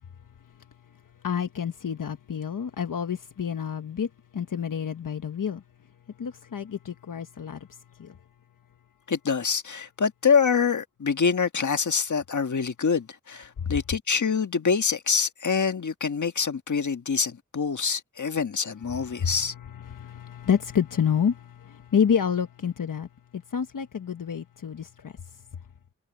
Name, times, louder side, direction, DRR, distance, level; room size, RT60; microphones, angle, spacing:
voice 1, 1.2-5.6 6.2-8.2 13.6-13.7 18.9-25.1, left 7 dB, 80° left, 1.1 m, -29 dB
voice 2, 9.1-19.5, left 6 dB, 65° left, 1.6 m, -25 dB
cardioid pair, 50°, 32 cm